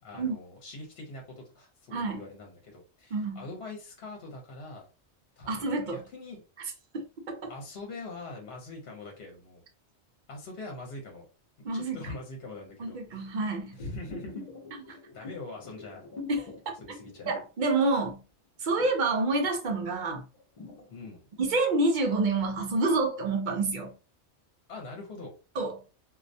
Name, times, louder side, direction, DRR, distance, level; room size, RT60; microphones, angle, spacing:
voice 1, 0.0-4.9 5.4-6.4 7.5-9.6 10.3-11.3 11.7-13.3 13.7-14.5 14.9-16.1 16.8-17.3 20.9-21.2 24.7-25.3, left 2 dB, 65° left, 0.9 m, -43 dB
voice 2, 1.9-2.3 3.1-3.4 5.5-6.0 6.9-7.5 11.6-12.0 12.8-13.8 16.3-16.5 17.3-18.2 18.6-20.2 21.4-23.9 25.6-25.8, right 3 dB, 55° right, 0.6 m, -28 dB
sound 1, 13.8-18.2 18.5-22.0 22.4-22.5, left 3 dB, 40° left, 0.6 m, -46 dB
2.3 x 2.1 x 2.6 m
omnidirectional pair, 1.2 m